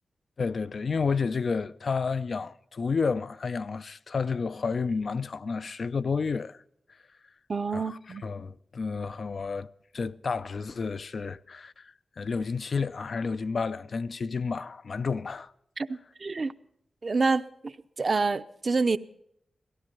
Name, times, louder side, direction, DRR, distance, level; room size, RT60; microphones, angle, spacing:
voice 1, 0.4-6.6 7.7-9.7 9.9-15.5, left 5 dB, 60° left, 0.6 m, -31 dB
voice 2, 7.5-8.2 15.8-16.5 17.0-19.0, right 4 dB, 45° right, 0.7 m, -28 dB
17.5 x 15.0 x 5.4 m
cardioid pair, 75°, 0 cm